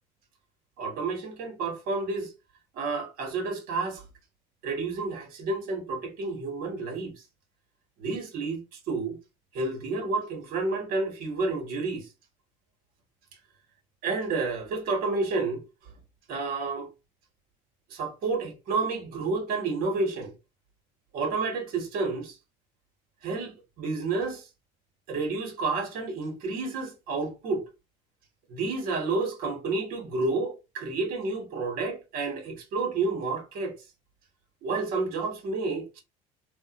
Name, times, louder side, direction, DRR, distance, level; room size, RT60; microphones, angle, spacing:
voice 1, 0.8-2.3 2.7-4.0 4.6-7.1 8.0-9.2 9.5-12.1 14.0-15.6 16.3-16.9 17.9-20.3 21.1-22.4 23.2-24.4 25.1-27.7 28.5-33.7 34.6-36.0, right 3 dB, 65° right, 1.4 m, -30 dB
3.4 x 2.2 x 2.9 m
cardioid pair, 115°, 16 cm